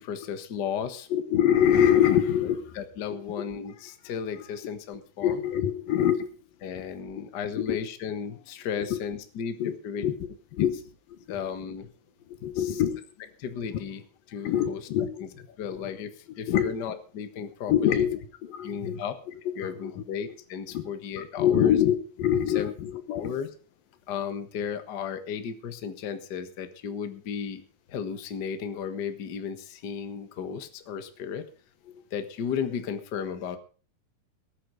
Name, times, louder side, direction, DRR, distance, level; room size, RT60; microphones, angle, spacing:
voice 1, 0.0-1.1 2.4-5.4 6.6-10.0 10.7-10.8 11.3-11.9 12.5-12.8 13.4-14.9 15.2-18.1 18.6-19.2 19.5-21.8 22.5-22.7 23.1-23.5 24.1-27.6 27.9-31.4 32.1-33.6, left 7 dB, 50° left, 8 dB, 1.3 m, -34 dB
voice 2, 1.1-2.8 3.1-3.2 5.2-6.3 6.8-6.9 7.6-7.8 8.9-9.0 9.6-10.1 10.5-10.8 11.1-11.4 12.3-13.0 14.4-15.2 16.5-16.7 17.7-19.0 19.5-20.1 20.7-20.9 21.1-23.3, left 10 dB, 90° left, 9 dB, 3.2 m, -25 dB
19.0 x 9.1 x 5.1 m, 0.39 s
omnidirectional pair, 4.0 m